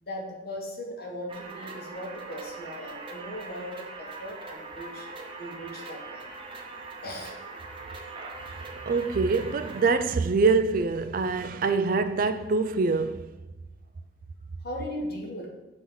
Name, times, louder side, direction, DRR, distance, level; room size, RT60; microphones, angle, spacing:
voice 1, 0.0-5.1 5.4-6.2 7.0-7.3 14.6-15.5, left 1 dB, 50° left, 1.4 m, -38 dB
sound 1, 1.3-9.9, right 3 dB, 25° right, 0.7 m, -41 dB
voice 2, 8.9-13.3, right 4 dB, 45° right, 0.3 m, -24 dB
7.7 x 2.9 x 5.5 m
head